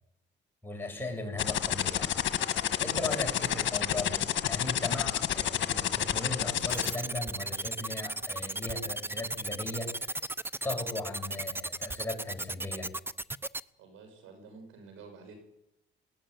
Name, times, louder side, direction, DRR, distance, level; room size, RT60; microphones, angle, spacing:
voice 1, 0.6-2.1 2.8-10.1 10.6-12.9, left 2 dB, 10° left, 1 dB, 7.9 m, -37 dB
sound 1, 1.4-6.9, left 11 dB, 65° left, 1.7 m, -28 dB
voice 2, 2.8-3.8 13.8-15.4, right 5 dB, 85° right, 5 dB, 7.2 m, -49 dB
sound 2, 6.7-13.6, right 2 dB, 10° right, 0.8 m, -35 dB
20.0 x 17.0 x 9.9 m, 0.83 s
cardioid pair, 90°, 20 cm